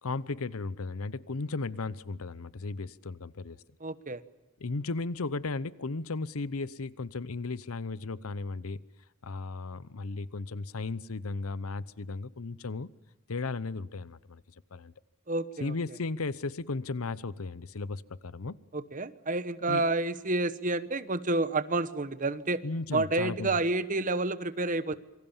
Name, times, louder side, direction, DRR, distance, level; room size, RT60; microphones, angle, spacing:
voice 1, 0.0-3.6 4.6-8.8 9.2-12.9 13.3-14.9 15.6-18.6 19.7-19.9 22.6-23.6, left 3 dB, 80° left, 0.8 m, -35 dB
voice 2, 3.8-4.2 15.3-15.7 18.7-22.6 22.9-24.9, right 2 dB, 35° right, 1.2 m, -29 dB
27.0 x 24.5 x 7.3 m
head